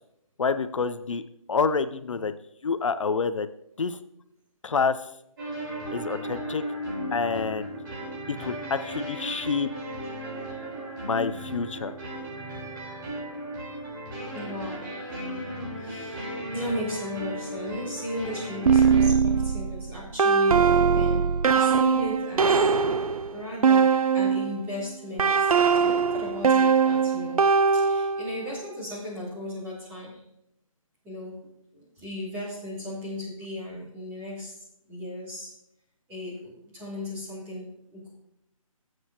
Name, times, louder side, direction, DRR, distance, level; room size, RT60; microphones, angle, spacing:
voice 1, 0.4-1.2 1.5-2.3 2.6-3.5 3.8-4.0 4.6-5.0 5.9-6.6 7.1-7.7 8.3-9.7 11.0-11.9, left 5 dB, 60° left, 12 dB, 0.6 m, -27 dB
Electric-guitar Improvisation in loop-machine. waw, 5.4-19.1, right 1 dB, 35° right, 4.1 m, -36 dB
voice 2, 14.3-15.1 15.8-22.7 23.3-30.2 31.0-31.4 31.7-34.6 34.9-35.6 36.1-38.1, left 1 dB, 10° right, -8 dB, 3.6 m, -36 dB
sound 1, 18.7-24.6 25.2-28.4, right 6 dB, 80° right, 0.5 m, -21 dB
13.0 x 7.7 x 2.9 m, 0.76 s
figure-of-eight pair, 160°, 18 cm